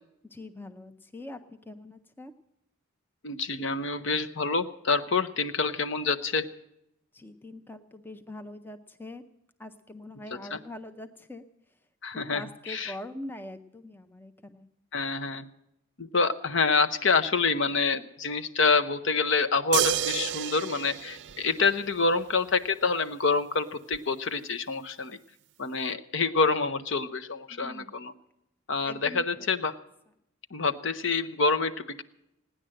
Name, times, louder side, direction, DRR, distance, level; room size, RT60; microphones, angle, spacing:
voice 1, 0.2-2.3 7.1-9.2 9.6-11.4 12.1-14.7 27.5-28.0 28.8-29.5, left 1 dB, 10° left, 8 dB, 0.5 m, -43 dB
voice 2, 3.2-6.5 10.5-10.6 12.0-12.9 14.9-15.5 16.0-25.2 25.6-28.1 28.7-29.8 30.5-32.0, left 4 dB, 60° left, 9 dB, 0.8 m, -27 dB
sound 1, 19.7-22.2 23.9-24.0, right 10 dB, 55° right, 0.5 m, -30 dB
17.0 x 10.0 x 7.6 m, 0.83 s
head